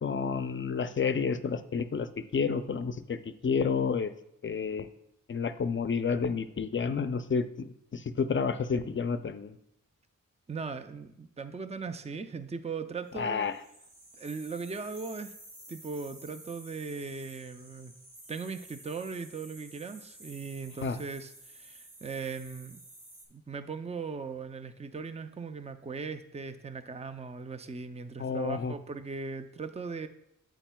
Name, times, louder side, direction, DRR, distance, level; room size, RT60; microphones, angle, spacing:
voice 1, 0.0-2.1 2.3-3.2 3.4-4.1 4.4-4.8 5.3-9.5 13.2-13.5 20.8-21.0 28.2-28.7, left 5 dB, 35° left, 11 dB, 0.5 m, -30 dB
voice 2, 10.5-13.5 14.2-15.3 15.7-17.9 18.3-22.8 23.3-30.1, right 4 dB, 20° right, 10 dB, 0.4 m, -39 dB
sound 1, 13.4-23.3, right 1 dB, 50° right, 2.4 m, -52 dB
8.7 x 8.0 x 2.3 m, 0.78 s
wide cardioid pair, 65°, 33 cm